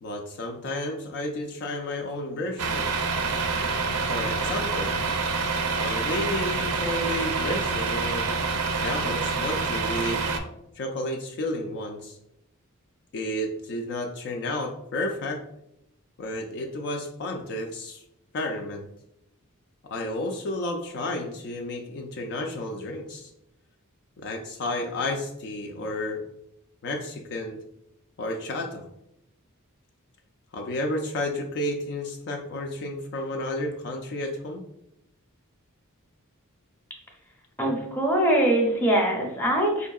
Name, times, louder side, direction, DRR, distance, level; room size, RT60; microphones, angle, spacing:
voice 1, 0.0-3.0 4.1-4.9 5.7-8.3 8.8-10.2 10.7-12.2 13.1-15.4 16.2-18.0 18.3-18.9 19.8-23.3 24.2-26.2 26.8-27.6 28.2-28.8 30.5-34.6, left 1 dB, 50° left, 2 dB, 0.4 m, -31 dB
Truck, 2.6-10.4, right 4 dB, 80° right, 0.5 m, -27 dB
voice 2, 37.6-39.9, right 1 dB, 10° left, -1 dB, 0.7 m, -22 dB
4.3 x 2.6 x 2.3 m, 0.81 s
head